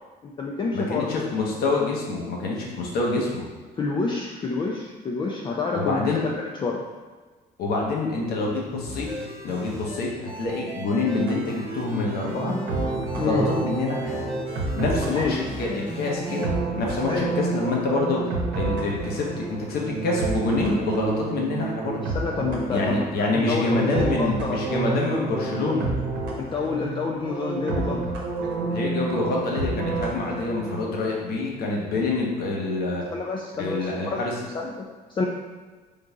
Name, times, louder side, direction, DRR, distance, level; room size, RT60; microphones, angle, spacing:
voice 1, 0.2-1.1 3.8-6.8 13.2-13.5 15.1-15.3 17.1-17.2 22.0-24.7 26.4-28.2 33.1-34.2 34.5-35.3, left 4 dB, 30° left, -1 dB, 0.4 m, -28 dB
voice 2, 0.7-3.5 5.7-6.2 7.6-9.1 9.4-12.6 13.2-14.2 14.7-18.2 18.5-22.0 22.7-25.9 28.7-33.0 33.6-34.3, left 3 dB, 65° left, -2 dB, 1.0 m, -26 dB
sound 1, 8.9-16.4, equal, 15° right, 1.0 m, -37 dB
sound 2, 11.2-30.8, right 3 dB, 80° right, 0.9 m, -30 dB
3.8 x 2.6 x 4.6 m, 1.4 s
cardioid pair, 110°, 17 cm